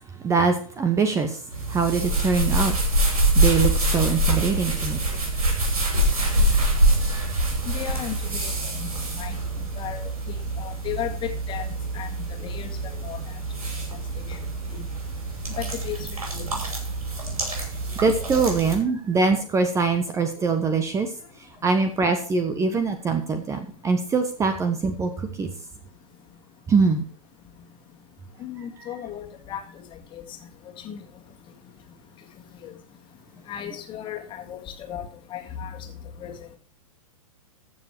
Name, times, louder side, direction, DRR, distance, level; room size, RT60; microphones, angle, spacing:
voice 1, 0.2-1.4 1.7-2.8 3.3-5.0 7.1-7.2 18.0-21.1 21.6-25.5 26.7-27.0, right 4 dB, 15° right, 8 dB, 1.1 m, -23 dB
sound 1, 1.5-18.8, right 1 dB, 80° right, 6.0 m, -25 dB
voice 2, 7.7-9.4 9.8-10.1 10.6-11.7 11.9-12.1 12.4-13.2 14.8-14.9 15.6-16.4 28.4-29.6 30.1-30.2 30.8-31.0 32.6-32.7 33.5-35.0 35.3-35.8 36.2-36.3, left 10 dB, 25° left, 4 dB, 2.0 m, -35 dB
14.5 x 6.9 x 4.6 m, 0.43 s
figure-of-eight pair, 110°, 19 cm